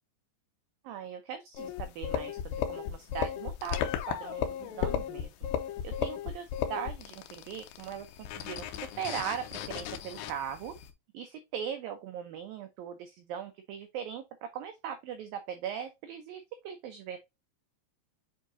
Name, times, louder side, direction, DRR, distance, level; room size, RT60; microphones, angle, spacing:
voice 1, 0.8-5.5 5.8-8.1 8.3-10.7 11.1-17.2, right 8 dB, 85° right, 2.0 m, -39 dB
sound 1, 1.5-10.9, left 9 dB, 80° left, 2.9 m, -35 dB
7.9 x 4.9 x 2.6 m
omnidirectional pair, 5.1 m